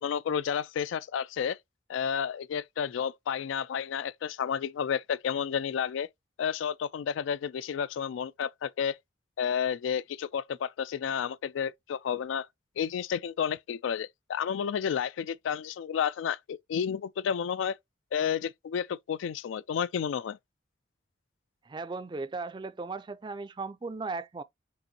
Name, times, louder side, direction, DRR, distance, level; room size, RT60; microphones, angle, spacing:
voice 1, 0.0-1.6 1.9-6.1 6.4-9.0 9.4-12.5 12.8-17.8 18.1-20.4, left 7 dB, 85° left, 0.3 m, -31 dB
voice 2, 21.7-24.4, right 3 dB, 25° right, 0.3 m, -37 dB
5.4 x 2.5 x 2.7 m
head